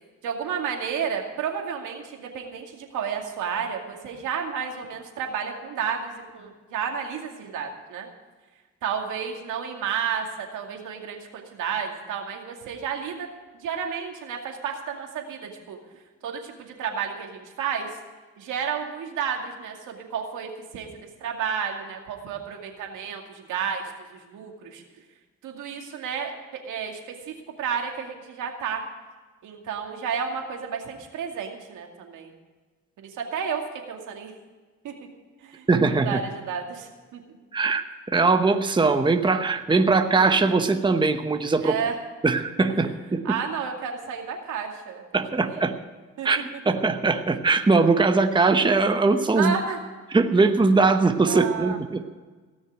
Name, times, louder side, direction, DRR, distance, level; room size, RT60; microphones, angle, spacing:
voice 1, 0.2-8.1 8.8-13.3 13.5-17.9 18.4-24.8 25.4-28.8 29.4-32.3 33.0-33.6 33.9-34.3 34.8-34.9 35.4-37.2 41.6-42.0 42.7-42.9 43.2-45.6 46.2-46.3 49.3-49.8 51.3-51.8, right 7 dB, 85° right, 2 dB, 2.4 m, -32 dB
voice 2, 35.7-36.2 37.5-41.8 42.2-43.2 45.1-45.7 46.2-49.5 50.1-52.1, right 3 dB, 15° right, 7 dB, 0.9 m, -21 dB
18.0 x 6.4 x 9.1 m, 1.3 s
cardioid pair, 90°, 30 cm